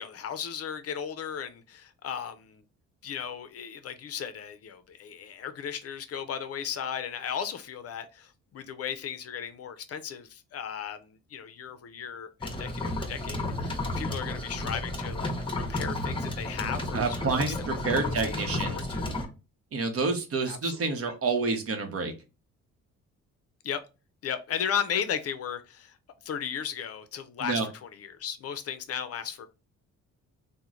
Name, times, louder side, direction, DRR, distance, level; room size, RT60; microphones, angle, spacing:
voice 1, 0.0-2.6 3.0-17.6 17.9-19.1 20.4-20.9 23.6-23.8 24.2-25.9 26.2-29.5, left 8 dB, 55° left, 0.5 m, -36 dB
sound 1, 12.4-19.3, left 1 dB, 15° left, 0.7 m, -32 dB
voice 2, 16.9-18.9 19.7-22.1 27.4-27.7, right 4 dB, 50° right, 0.9 m, -28 dB
3.0 x 2.1 x 3.6 m
cardioid pair, 90°, 30 cm